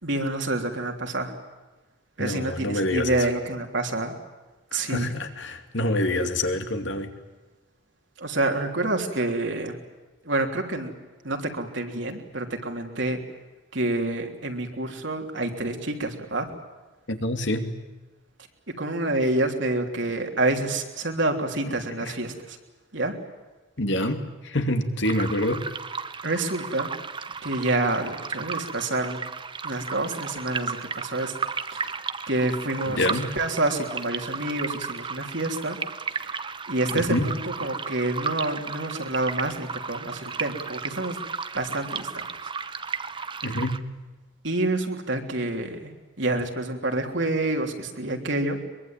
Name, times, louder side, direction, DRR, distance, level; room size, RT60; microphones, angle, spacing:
voice 1, 0.0-1.3 2.2-4.1 4.7-5.1 8.2-9.8 10.2-10.9 11.2-13.2 13.7-16.5 18.8-22.6 22.9-23.2 26.2-26.9 27.4-29.2 29.6-31.3 31.7-31.9 32.3-33.1 33.4-35.8 36.1-41.2 41.5-42.1 44.4-45.9 46.2-48.6, right 2 dB, 65° right, 3 dB, 3.3 m, -28 dB
voice 2, 2.2-3.3 4.7-7.1 17.1-17.7 22.0-22.1 23.8-25.7 32.9-33.3 36.9-37.3 43.4-43.8, left 1 dB, 65° left, 6 dB, 2.6 m, -26 dB
sound 1, 25.0-43.8, right 5 dB, 25° right, 0.8 m, -34 dB
23.5 x 23.0 x 9.1 m, 1.2 s
head